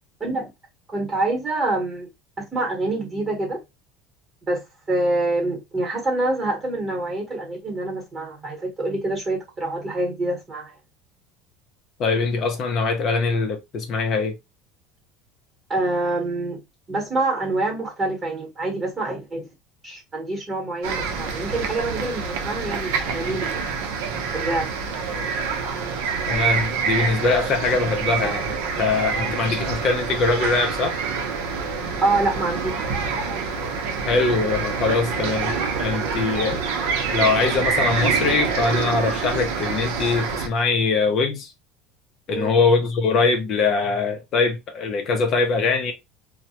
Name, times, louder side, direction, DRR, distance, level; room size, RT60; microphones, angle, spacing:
voice 1, 0.9-2.1 2.5-3.6 4.5-10.7 15.7-16.6 16.9-19.5 19.8-23.8 24.3-24.7 32.0-32.7 42.3-42.5, right 2 dB, 20° right, 1.0 m, -26 dB
voice 2, 12.0-14.3 26.3-31.0 34.0-36.6 37.1-41.5 42.3-45.9, left 4 dB, 40° left, 0.5 m, -22 dB
sound 1, 20.8-40.5, right 5 dB, 85° right, 0.6 m, -26 dB
2.2 x 2.0 x 2.8 m
cardioid pair, 145°, 0 cm